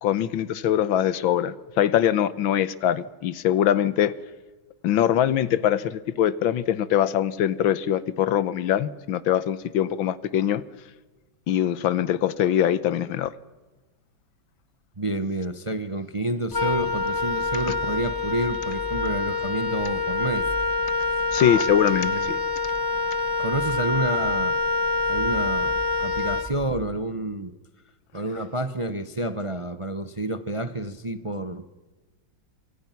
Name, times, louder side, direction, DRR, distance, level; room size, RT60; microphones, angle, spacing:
voice 1, 0.0-4.1 4.8-10.6 11.5-13.3 21.3-22.4, left 10 dB, 80° left, 17 dB, 1.7 m, -23 dB
voice 2, 15.0-20.5 21.1-21.2 22.0-22.3 23.4-24.6 25.1-27.5 28.1-31.7, right 1 dB, 25° right, 11 dB, 0.7 m, -29 dB
Wind instrument woodwind instrument, 16.5-26.9, left 3 dB, 30° left, 0.4 m, -26 dB
27.0 x 25.0 x 5.9 m, 1.2 s
omnidirectional pair, 2.1 m